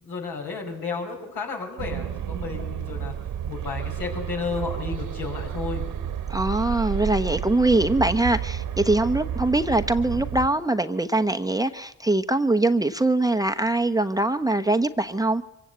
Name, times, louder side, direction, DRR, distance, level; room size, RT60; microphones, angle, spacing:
voice 1, 0.0-3.1 3.5-5.9, left 4 dB, 70° left, 5.8 m, -32 dB
sound 1, 1.8-10.5, right 9 dB, 60° right, 1.5 m, -31 dB
voice 2, 6.3-15.4, right 2 dB, 10° right, 1.0 m, -22 dB
24.0 x 16.0 x 8.2 m
hypercardioid pair, 50°, 37 cm